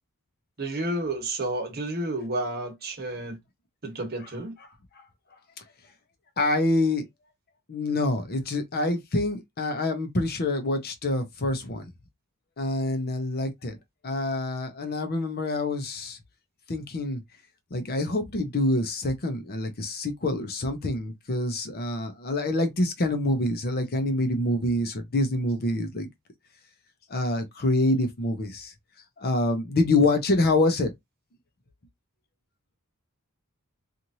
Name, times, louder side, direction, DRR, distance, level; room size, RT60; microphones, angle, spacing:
voice 1, 0.6-3.4 3.8-4.5, right 2 dB, 45° right, 1.1 m, -31 dB
voice 2, 6.4-7.0 7.7-11.9 12.6-13.8 14.0-16.2 16.7-17.2 17.7-26.1 27.1-28.7 29.2-30.9, left 2 dB, 45° left, 0.7 m, -26 dB
3.0 x 2.5 x 2.6 m
head